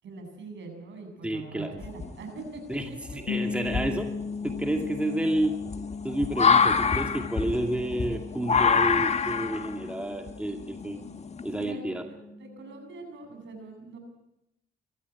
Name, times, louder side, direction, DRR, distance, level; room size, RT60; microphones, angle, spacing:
voice 1, 0.0-2.6 3.3-3.6 11.5-14.0, right 3 dB, 70° right, 3 dB, 7.9 m, -43 dB
voice 2, 1.2-1.7 2.7-2.9 3.1-4.1 4.4-5.6 6.0-11.0 11.4-12.0, right 1 dB, 5° right, 4 dB, 2.4 m, -30 dB
sound 1, 1.8-2.4 3.0-3.1 3.6-11.7, left 6 dB, 35° left, 1.5 m, -26 dB
sound 2, 3.3-13.0, left 5 dB, 65° left, 4.8 m, -38 dB
24.5 x 14.5 x 8.6 m, 0.86 s
cardioid pair, 90°, 20 cm